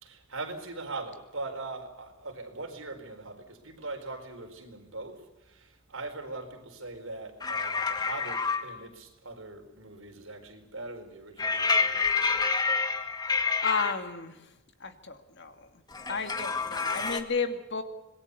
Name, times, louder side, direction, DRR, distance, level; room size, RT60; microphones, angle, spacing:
voice 1, 0.0-12.4 16.9-17.1, right 3 dB, 75° right, 4.6 m, -41 dB
sound 1, 7.4-8.6 11.4-13.9 15.9-17.2, left 4 dB, 20° left, 1.9 m, -28 dB
voice 2, 13.6-14.5 14.8-15.7 16.1-17.8, left 5 dB, 60° left, 2.3 m, -32 dB
26.0 x 21.5 x 7.0 m
head